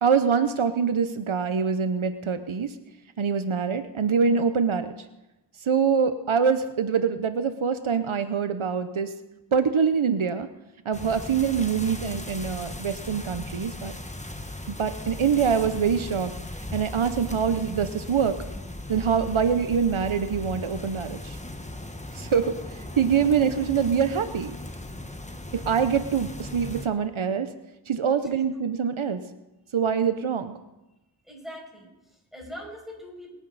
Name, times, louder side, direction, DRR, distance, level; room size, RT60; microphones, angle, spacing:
voice 1, 0.0-2.7 3.2-4.9 5.6-9.2 9.5-10.5 10.8-13.9 14.7-16.3 16.7-18.4 18.9-21.4 22.1-22.6 23.0-24.6 25.5-27.5 27.9-29.3 29.7-30.6, right 6 dB, 85° right, 10 dB, 0.9 m, -24 dB
sound 1, 10.9-26.9, left 1 dB, 15° left, 1.2 m, -38 dB
voice 2, 31.2-33.3, equal, ahead, -2 dB, 6.1 m, -42 dB
24.0 x 9.7 x 4.1 m, 0.98 s
wide cardioid pair, 45°, 47 cm